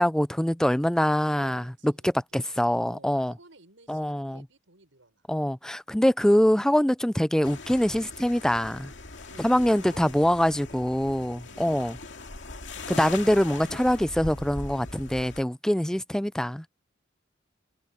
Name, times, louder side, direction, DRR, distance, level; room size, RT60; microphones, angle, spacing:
voice 1, 0.0-3.3 3.9-4.4 5.3-8.9 9.4-12.0 12.9-16.7, equal, 5° left, 0.4 m, -24 dB
voice 2, 1.4-5.3 9.3-10.2 11.0-11.6, right 2 dB, 85° right, 6.6 m, -53 dB
sound 1, 7.4-15.4, left 3 dB, 70° left, 2.5 m, -41 dB
head